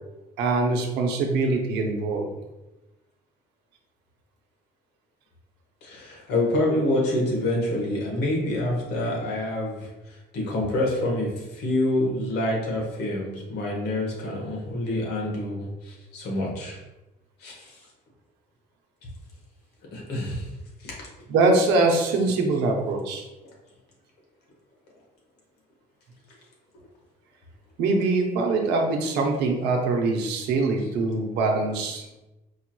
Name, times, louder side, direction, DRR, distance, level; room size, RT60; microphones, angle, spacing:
voice 1, 0.4-2.3 21.3-23.3 27.8-32.2, right 3 dB, 85° right, 2 dB, 0.7 m, -23 dB
voice 2, 5.8-9.9 10.3-16.8 17.4-17.8 19.9-20.5 20.8-21.1, left 1 dB, 75° left, -2 dB, 1.4 m, -27 dB
4.7 x 3.0 x 2.2 m, 1.0 s
cardioid pair, 110°, 17 cm